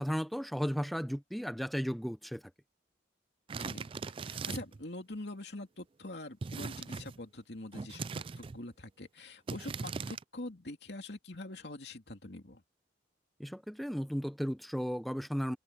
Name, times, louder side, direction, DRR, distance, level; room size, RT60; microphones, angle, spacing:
voice 1, 0.0-2.4 13.4-15.6, equal, ahead, 0.7 m, -34 dB
sound 1, 3.5-4.8 6.4-7.2 7.7-8.6 9.5-10.2, right 5 dB, 30° right, 0.3 m, -39 dB
voice 2, 3.6-3.9 4.2-12.6, left 2 dB, 65° left, 2.8 m, -44 dB
head